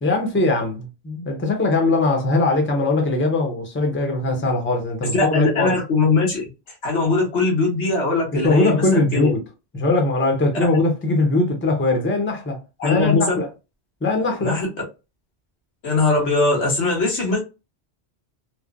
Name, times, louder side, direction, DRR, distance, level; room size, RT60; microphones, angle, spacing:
voice 1, 0.0-5.7 8.3-9.4 9.7-13.5 14.0-14.6, left 2 dB, 15° left, 0.6 m, -21 dB
voice 2, 5.2-6.4 6.8-9.3 12.8-13.4 14.4-14.7 15.8-17.4, left 3 dB, 85° left, 1.4 m, -20 dB
3.0 x 2.1 x 2.4 m
omnidirectional pair, 1.1 m